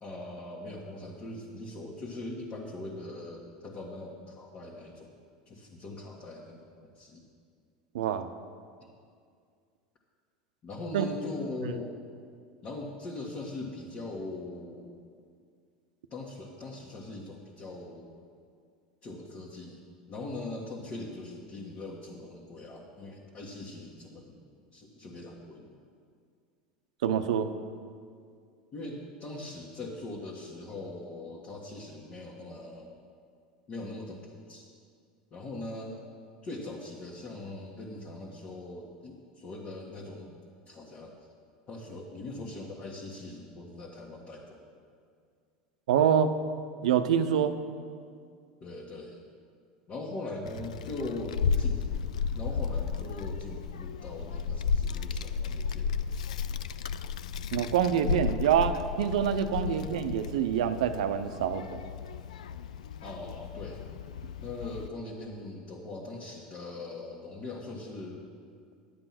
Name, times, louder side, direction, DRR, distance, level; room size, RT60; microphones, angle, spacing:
voice 1, 0.0-5.1 5.4-7.2 8.8-8.9 10.6-12.0 12.6-14.9 16.1-18.1 19.0-19.8 20.1-24.4 24.7-25.7 28.7-32.9 33.7-34.7 35.3-36.0 36.4-40.3 40.7-41.1 41.7-44.6 48.6-49.2 49.9-51.9 52.3-56.1 59.6-60.0 63.0-63.8 64.4-68.3, left 2 dB, 40° left, -3 dB, 1.6 m, -41 dB
voice 2, 7.9-8.3 10.9-11.1 27.0-27.5 45.9-46.3 46.8-47.5 57.5-61.8, right 8 dB, 80° right, 9 dB, 0.6 m, -26 dB
Child speech kid speaking, 50.4-64.9, left 6 dB, 85° left, 0.4 m, -33 dB
11.0 x 7.9 x 5.9 m, 2.2 s
hypercardioid pair, 95°, 4 cm